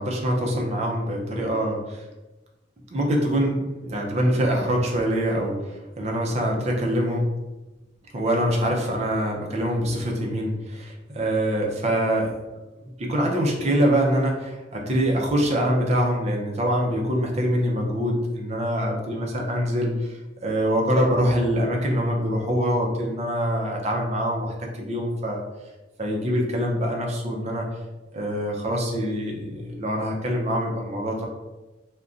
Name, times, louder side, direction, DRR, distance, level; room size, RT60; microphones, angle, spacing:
voice 1, 0.0-2.1 2.9-7.3 8.1-12.4 12.8-25.4 26.0-27.7 28.1-31.3, equal, 35° right, 0 dB, 0.5 m, -24 dB
2.5 x 2.2 x 3.6 m, 1.1 s
head